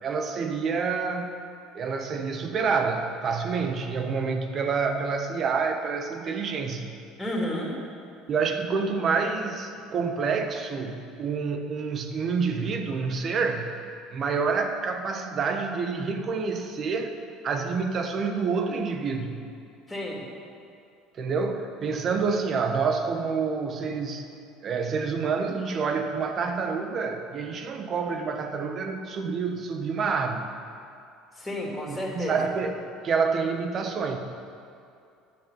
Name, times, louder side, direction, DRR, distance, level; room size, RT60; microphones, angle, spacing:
voice 1, 0.0-1.3 1.7-6.9 8.3-13.7 14.1-17.1 17.4-19.4 21.2-24.2 24.6-30.5 31.9-32.8 33.0-34.2, right 5 dB, 45° right, 6 dB, 1.1 m, -28 dB
voice 2, 7.2-7.7 19.9-20.2 31.4-32.4, left 1 dB, 15° left, -2 dB, 2.9 m, -31 dB
10.5 x 7.3 x 6.1 m, 2.5 s
supercardioid pair, 85°, 0 cm